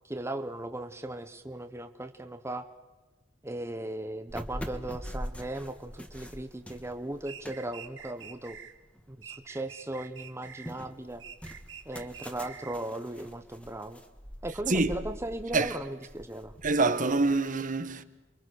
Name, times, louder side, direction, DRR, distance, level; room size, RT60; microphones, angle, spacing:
voice 1, 0.0-2.7 3.4-8.6 9.1-11.2 11.8-14.0 14.4-16.5, right 1 dB, 15° right, 1.0 m, -37 dB
sound 1, 4.3-9.5 9.9-17.5, equal, 5° left, 1.6 m, -44 dB
sound 2, 7.3-8.7 9.2-10.8 11.2-12.8, right 8 dB, 70° right, 2.0 m, -46 dB
voice 2, 16.6-18.0, right 3 dB, 45° right, 1.2 m, -25 dB
28.5 x 23.5 x 6.4 m
head